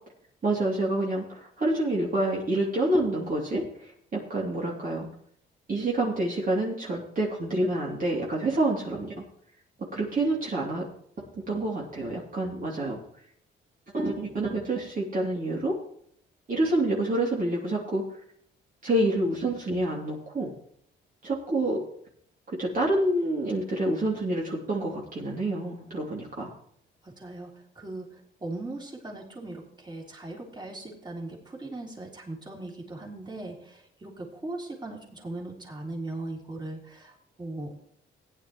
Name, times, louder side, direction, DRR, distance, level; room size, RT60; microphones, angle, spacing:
voice 1, 0.4-5.1 5.7-9.1 9.9-10.9 11.2-13.0 13.9-15.8 16.5-18.0 18.8-20.5 21.2-21.8 22.5-26.5, right 1 dB, 45° right, -3 dB, 3.1 m, -27 dB
voice 2, 27.0-37.7, right 2 dB, 20° right, -1 dB, 3.7 m, -39 dB
15.5 x 10.0 x 3.1 m, 0.66 s
cardioid pair, 90°, 20 cm